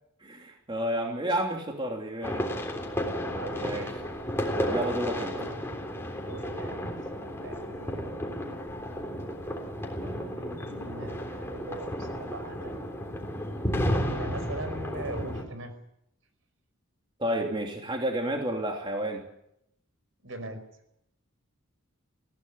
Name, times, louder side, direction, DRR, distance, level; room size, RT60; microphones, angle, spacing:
voice 1, 0.2-2.4 3.6-4.0 4.5-5.3 9.9-10.6 17.2-19.2, right 1 dB, 25° right, 1 dB, 3.0 m, -31 dB
sound 1, 2.2-15.4, equal, 10° left, 3.5 m, -33 dB
voice 2, 3.0-3.9 5.1-5.7 6.1-7.0 7.2-8.1 10.4-12.8 13.9-15.7 20.2-20.6, right 2 dB, 70° right, 9 dB, 4.9 m, -41 dB
21.0 x 16.5 x 9.8 m, 0.79 s
head